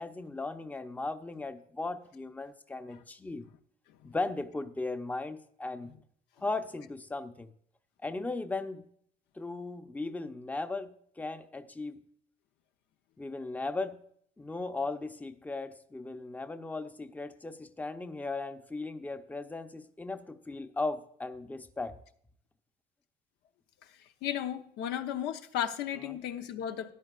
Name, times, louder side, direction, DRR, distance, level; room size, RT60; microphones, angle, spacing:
voice 1, 0.0-3.5 4.0-5.9 6.4-7.5 8.0-8.8 9.4-12.0 13.2-14.0 14.4-21.9 26.0-26.2, left 3 dB, 10° left, 8 dB, 0.7 m, -37 dB
voice 2, 24.2-26.9, left 10 dB, 85° left, 7 dB, 0.8 m, -34 dB
14.0 x 10.5 x 2.4 m, 0.64 s
cardioid pair, 110°, 17 cm